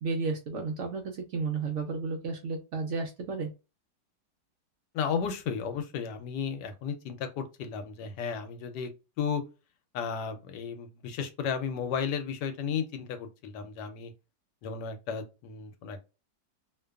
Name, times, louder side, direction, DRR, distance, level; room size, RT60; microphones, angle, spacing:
voice 1, 0.0-3.5, right 4 dB, 80° right, 0.6 m, -32 dB
voice 2, 4.9-8.9 9.2-9.4 9.9-14.1 14.6-16.0, left 6 dB, 80° left, 1.2 m, -34 dB
2.8 x 2.2 x 2.2 m
omnidirectional pair, 1.8 m